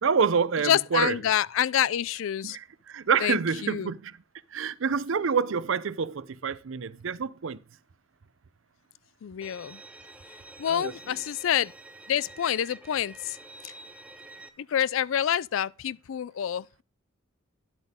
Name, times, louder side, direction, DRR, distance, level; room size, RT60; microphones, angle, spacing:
voice 1, 0.0-1.2 2.4-4.2 4.5-7.6 10.7-10.9, right 6 dB, 65° right, 0.5 m, -27 dB
voice 2, 0.6-2.6 3.2-3.9 9.2-9.8 10.6-11.7 12.1-13.4 13.6-13.7 14.6-16.8, left 10 dB, 70° left, 0.4 m, -27 dB
Bowed string instrument, 9.4-14.5, right 2 dB, 5° right, 0.7 m, -48 dB
10.5 x 8.0 x 3.6 m
head